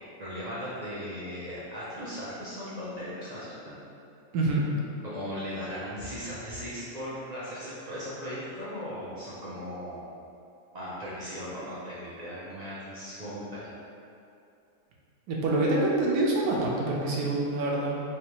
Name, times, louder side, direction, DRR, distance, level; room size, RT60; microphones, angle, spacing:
voice 1, 0.2-3.7 5.0-10.1 10.7-13.7, equal, 65° right, -9 dB, 0.4 m, -37 dB
voice 2, 15.3-18.0, right 2 dB, 80° right, -3 dB, 1.1 m, -26 dB
3.3 x 3.2 x 2.9 m, 2.6 s
omnidirectional pair, 1.6 m